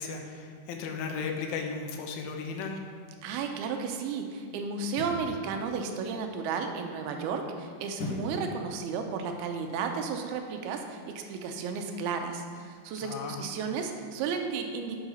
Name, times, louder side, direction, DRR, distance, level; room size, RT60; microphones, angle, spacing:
voice 1, 0.0-2.8 13.0-13.4, left 5 dB, 75° left, 3 dB, 2.5 m, -35 dB
voice 2, 3.2-15.0, right 5 dB, 85° right, 4 dB, 2.5 m, -33 dB
sound 1, 5.0-5.3 8.0-8.4 8.9-9.0, left 2 dB, 55° left, 1.8 m, -36 dB
9.7 x 4.8 x 5.5 m, 2.2 s
omnidirectional pair, 4.7 m